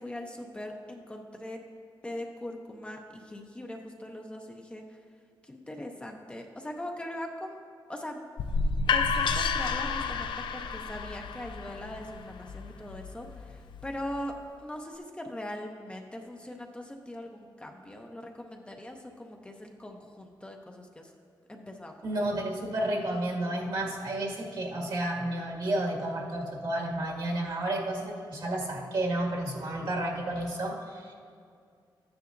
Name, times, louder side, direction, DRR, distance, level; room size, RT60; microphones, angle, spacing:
voice 1, 0.0-1.6 2.0-5.0 5.4-7.6 7.9-8.2 8.9-21.1 21.5-21.9, left 1 dB, 15° left, 2 dB, 0.6 m, -41 dB
sound 1, 8.4-14.2, left 5 dB, 85° left, 0.5 m, -31 dB
voice 2, 22.0-31.1, right 1 dB, 70° right, -3 dB, 1.8 m, -31 dB
14.0 x 9.4 x 2.6 m, 2.2 s
wide cardioid pair, 145°, 8 cm